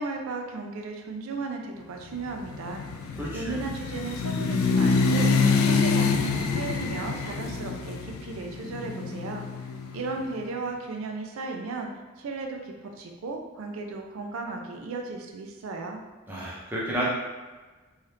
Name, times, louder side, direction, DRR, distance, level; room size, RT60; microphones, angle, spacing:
voice 1, 0.0-2.8 3.3-5.3 5.6-9.4 9.9-11.9 12.2-16.0, right 3 dB, 80° right, 3 dB, 0.4 m, -35 dB
sound 1, 2.3-10.3, left 4 dB, 80° left, 0.3 m, -26 dB
voice 2, 3.2-3.6 16.3-17.1, equal, 10° right, -6 dB, 0.6 m, -31 dB
2.8 x 2.4 x 3.3 m, 1.3 s
head